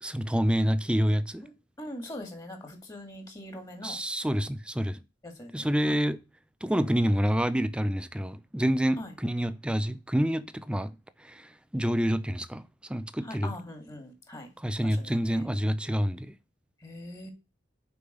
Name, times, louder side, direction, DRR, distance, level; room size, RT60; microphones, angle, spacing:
voice 1, 0.0-1.4 3.8-5.0 5.5-6.2 6.6-13.5 14.6-16.4, equal, 5° right, 0.6 m, -28 dB
voice 2, 1.8-4.0 5.2-6.0 9.0-9.1 13.2-14.5 15.0-15.2 16.8-17.3, left 1 dB, 20° left, 2.3 m, -42 dB
7.0 x 5.5 x 6.7 m
head